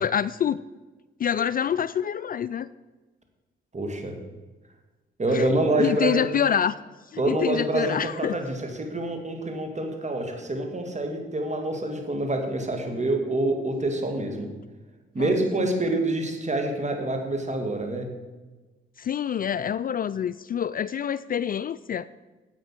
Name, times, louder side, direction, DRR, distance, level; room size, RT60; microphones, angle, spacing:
voice 1, 0.0-0.6 1.2-2.7 5.3-5.5 5.8-6.8 7.1-8.4 15.2-15.8 19.0-22.1, left 8 dB, 45° left, 17 dB, 0.4 m, -26 dB
voice 2, 3.7-4.1 5.2-6.3 7.2-14.5 15.1-18.1, right 2 dB, 35° right, 4 dB, 2.5 m, -26 dB
9.7 x 8.1 x 6.0 m, 1.2 s
supercardioid pair, 55°, 21 cm